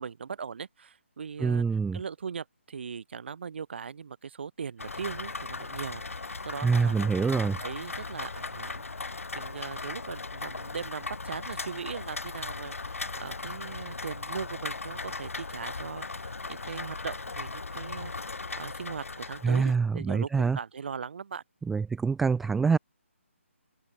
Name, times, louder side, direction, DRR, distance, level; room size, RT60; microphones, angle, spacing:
voice 1, 0.0-1.6 1.9-8.9 9.3-18.1 18.6-21.4, right 6 dB, 55° right, 2.2 m, -39 dB
voice 2, 1.4-2.0 6.6-7.6 19.4-20.6 21.7-22.8, right 5 dB, 5° right, 0.3 m, -25 dB
Rain, 4.8-19.8, left 3 dB, 85° left, 4.5 m, -38 dB
open air
hypercardioid pair, 160°, 7 cm